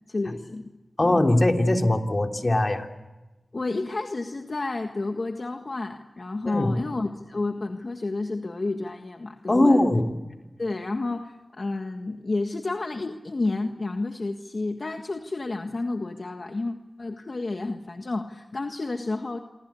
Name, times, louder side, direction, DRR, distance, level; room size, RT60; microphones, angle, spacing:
voice 1, 0.1-0.7 1.0-1.2 3.5-9.8 10.6-19.4, left 2 dB, 60° left, 5 dB, 1.6 m, -30 dB
voice 2, 1.0-2.9 6.4-6.8 9.5-10.1, left 1 dB, 40° left, 4 dB, 3.3 m, -21 dB
27.5 x 24.0 x 8.5 m, 1.1 s
cardioid pair, 40°, 0 cm